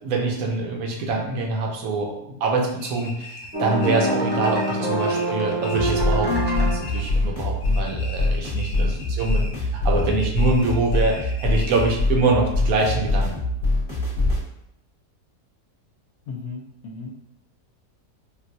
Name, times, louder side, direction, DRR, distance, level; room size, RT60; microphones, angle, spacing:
voice 1, 0.0-13.4, right 3 dB, 70° right, 1 dB, 1.0 m, -25 dB
sound 1, 2.8-6.2 6.4-7.3 7.6-9.7 9.9-12.1, left 2 dB, 50° left, 1.0 m, -41 dB
sound 2, 3.5-7.0, right 1 dB, 15° right, 0.4 m, -24 dB
sound 3, 5.7-14.4, left 2 dB, 20° left, 1.0 m, -24 dB
voice 2, 16.3-17.3, left 4 dB, 75° left, 1 dB, 1.0 m, -36 dB
3.9 x 2.2 x 2.6 m, 0.80 s
omnidirectional pair, 1.6 m